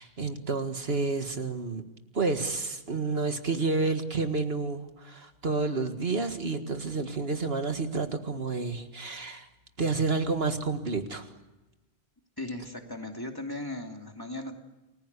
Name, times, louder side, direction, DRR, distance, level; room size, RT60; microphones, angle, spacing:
voice 1, 0.0-1.8 2.1-9.5 9.8-11.3, right 3 dB, 70° right, 7 dB, 2.1 m, -30 dB
voice 2, 12.4-14.5, left 1 dB, 20° left, 3 dB, 2.9 m, -37 dB
29.5 x 20.5 x 8.3 m, 1.1 s
omnidirectional pair, 1.1 m